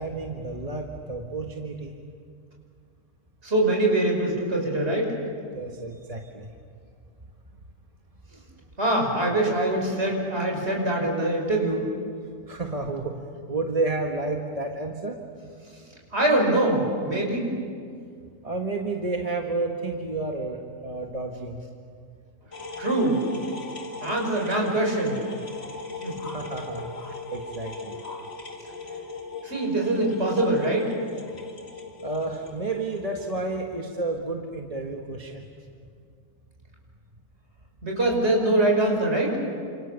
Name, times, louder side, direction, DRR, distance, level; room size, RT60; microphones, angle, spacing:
voice 1, 0.0-2.0 5.5-6.5 12.5-13.1 13.5-15.2 18.4-21.6 26.3-26.9 27.3-28.2 32.0-35.4, right 3 dB, 25° right, 1 dB, 1.6 m, -31 dB
voice 2, 3.4-5.2 8.8-11.9 16.1-17.5 22.8-23.2 24.0-25.2 26.0-26.2 29.4-30.9 37.8-39.4, right 1 dB, 45° right, 0 dB, 5.8 m, -23 dB
sound 1, 22.5-33.6, left 3 dB, 45° left, 2.4 m, -38 dB
29.5 x 26.5 x 7.1 m, 2.2 s
omnidirectional pair, 1.6 m